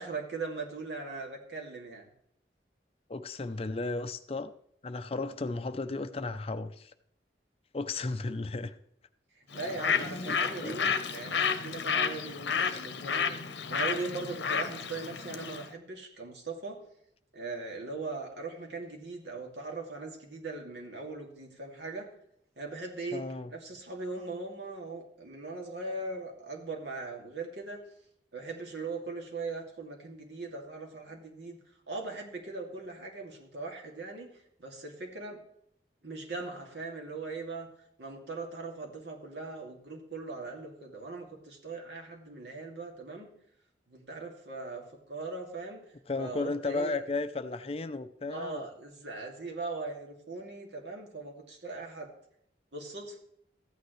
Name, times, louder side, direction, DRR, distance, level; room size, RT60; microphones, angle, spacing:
voice 1, 0.0-2.1 9.4-16.8 17.3-22.1 22.6-27.9 28.3-31.6 31.9-35.4 36.0-37.7 38.0-43.3 43.9-45.9 46.2-47.0 48.3-52.1 52.7-53.2, right 3 dB, 75° right, 0 dB, 2.4 m, -40 dB
voice 2, 3.1-4.5 4.8-6.9 7.7-8.7 10.0-10.9 23.1-23.5 46.1-48.6, left 3 dB, 35° left, 11 dB, 0.5 m, -34 dB
Bird, 9.5-15.7, left 6 dB, 75° left, 0.8 m, -31 dB
14.0 x 9.3 x 3.2 m, 0.71 s
head